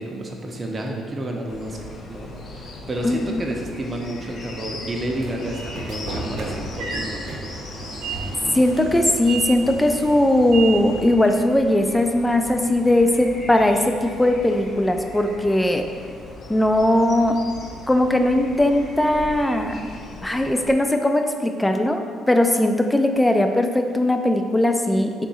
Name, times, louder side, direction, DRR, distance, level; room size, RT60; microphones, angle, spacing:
voice 1, 0.0-1.8 2.1-7.3, right 1 dB, 30° right, 0 dB, 0.6 m, -31 dB
sound 1, 1.5-20.7, left 2 dB, 60° left, 0.5 m, -39 dB
voice 2, 3.0-3.4 8.5-15.8 16.5-17.4 17.9-19.8 20.2-22.0 22.3-25.3, left 1 dB, 10° left, 5 dB, 0.3 m, -19 dB
Train / Sliding door, 4.7-11.2, right 3 dB, 85° right, 0.7 m, -33 dB
3.6 x 2.6 x 4.1 m, 2.1 s
cardioid pair, 90°, 0 cm